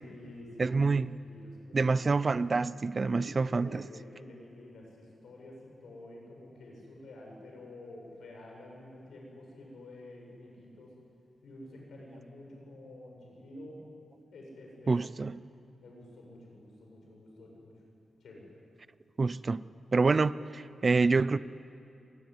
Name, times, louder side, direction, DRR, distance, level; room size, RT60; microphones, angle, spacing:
voice 1, 0.0-2.0 3.0-10.9 11.4-13.8 14.3-15.0 15.8-17.8 18.2-18.5, left 1 dB, 85° left, 7.6 m, -49 dB
voice 2, 0.6-1.2 1.7-3.9 14.9-15.4 19.2-19.6 19.9-21.4, right 4 dB, 35° right, 0.5 m, -27 dB
25.5 x 19.0 x 9.6 m
wide cardioid pair, 145°, 0 cm